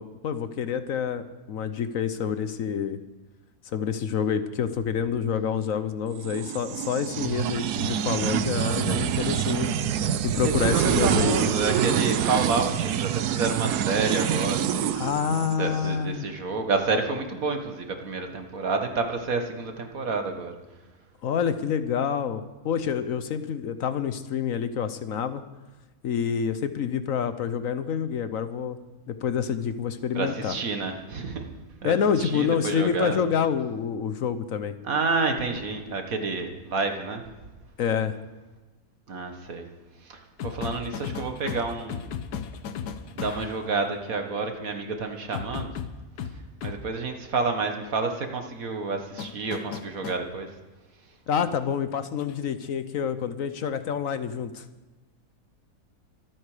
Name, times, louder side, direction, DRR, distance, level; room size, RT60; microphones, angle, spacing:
voice 1, 0.0-3.0 3.7-9.7 10.2-11.5 14.9-16.3 21.2-25.4 26.0-28.8 29.1-30.6 31.8-34.7 37.8-38.2 51.3-54.6, left 7 dB, 65° left, 11 dB, 1.1 m, -27 dB
sound 1, 6.2-15.9, right 9 dB, 80° right, 1.2 m, -26 dB
voice 2, 10.4-15.0 15.6-20.5 30.2-31.4 31.8-33.2 34.8-37.2 39.1-39.6 40.1-42.1 43.2-45.7 46.6-50.5, right 4 dB, 60° right, 5 dB, 1.9 m, -29 dB
sound 2, 40.4-43.6 45.3-46.8 49.2-50.2 52.2-52.4, left 7 dB, 90° left, 1.4 m, -35 dB
25.0 x 9.2 x 5.0 m, 1.2 s
omnidirectional pair, 1.7 m